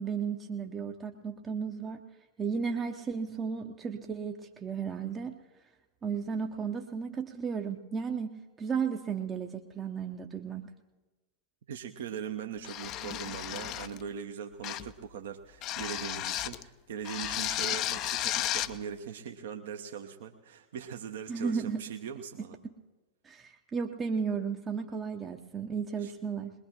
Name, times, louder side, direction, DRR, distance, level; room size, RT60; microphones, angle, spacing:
voice 1, 0.0-2.0 2.4-5.4 6.0-10.6 21.3-21.8 23.2-26.5, right 6 dB, 20° right, 3 dB, 0.7 m, -34 dB
voice 2, 11.7-22.6 26.0-26.1, right 7 dB, 60° right, 5 dB, 0.8 m, -40 dB
sound 1, 12.6-14.0 14.6-15.0 15.6-16.6 17.0-18.8, left 13 dB, 35° left, 0.5 m, -33 dB
21.0 x 21.0 x 2.9 m, 1.2 s
figure-of-eight pair, 90°, 0 cm